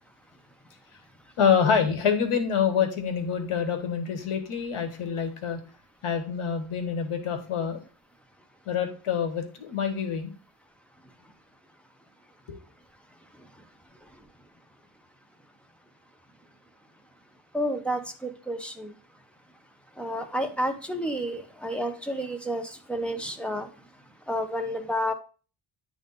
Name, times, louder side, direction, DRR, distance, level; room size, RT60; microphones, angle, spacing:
voice 1, 1.4-5.6 6.0-7.8 8.7-10.3 12.5-12.6, left 7 dB, 85° left, 6 dB, 1.4 m, -26 dB
voice 2, 17.5-18.9 20.0-22.6 22.9-23.7 24.3-25.1, equal, ahead, 5 dB, 0.5 m, -30 dB
10.0 x 3.5 x 4.1 m, 0.37 s
wide cardioid pair, 180°, 50 cm